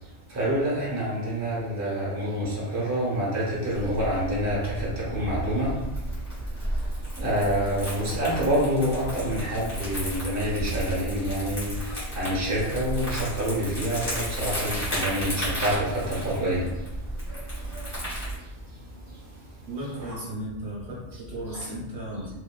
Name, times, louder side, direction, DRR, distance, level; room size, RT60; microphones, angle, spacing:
voice 1, 0.3-5.7 7.2-11.7 12.1-16.7 20.0-20.1, equal, 20° right, -6 dB, 0.6 m, -27 dB
Crumpling crinkling, 3.7-18.4, right 1 dB, 15° left, 1.2 m, -33 dB
voice 2, 19.7-22.3, right 1 dB, 60° right, -5 dB, 0.8 m, -35 dB
2.9 x 2.2 x 2.2 m, 1.0 s
omnidirectional pair, 1.2 m